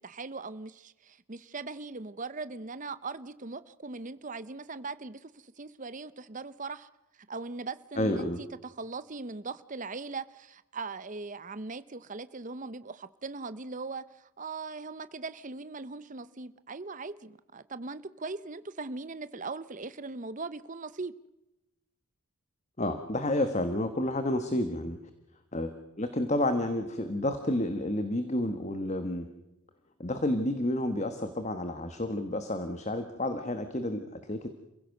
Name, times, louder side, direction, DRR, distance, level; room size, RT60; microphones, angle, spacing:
voice 1, 0.0-6.9 7.3-21.1, right 3 dB, 35° right, 0.7 m, -40 dB
voice 2, 8.0-8.4 22.8-25.0 25.5-29.3 30.0-34.5, left 1 dB, 30° left, 1.4 m, -30 dB
28.0 x 16.0 x 6.6 m
head